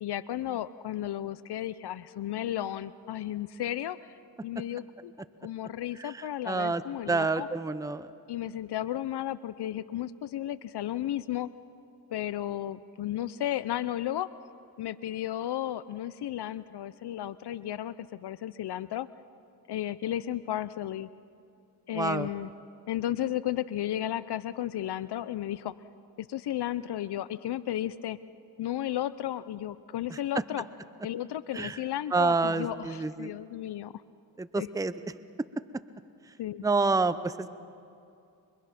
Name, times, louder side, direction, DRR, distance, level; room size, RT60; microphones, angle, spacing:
voice 1, 0.0-4.1 4.4-5.1 5.4-7.5 8.3-11.5 12.1-14.3 14.8-19.1 19.7-21.1 21.9-22.5 22.9-25.7 26.2-28.2 28.6-30.7 31.0-33.9 34.6-34.7 36.4-36.6, left 12 dB, 65° left, 16 dB, 0.7 m, -34 dB
voice 2, 6.0-6.8 7.1-8.1 21.9-22.3 30.1-30.2 31.5-31.8 32.1-33.3 34.4-34.9 36.6-37.5, right 3 dB, 10° right, 12 dB, 0.7 m, -28 dB
28.5 x 24.5 x 5.9 m, 2.6 s
cardioid pair, 60°, 42 cm